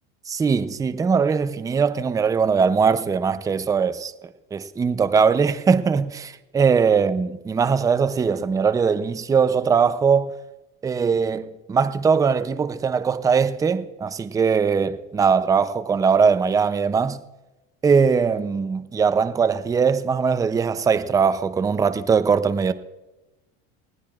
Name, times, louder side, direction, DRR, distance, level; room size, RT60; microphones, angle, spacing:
voice 1, 0.3-4.1 4.5-10.4 10.8-17.2 17.8-22.7, right 6 dB, 10° right, 0.5 m, -20 dB
20.5 x 15.5 x 2.4 m
cardioid pair, 145°, 30 cm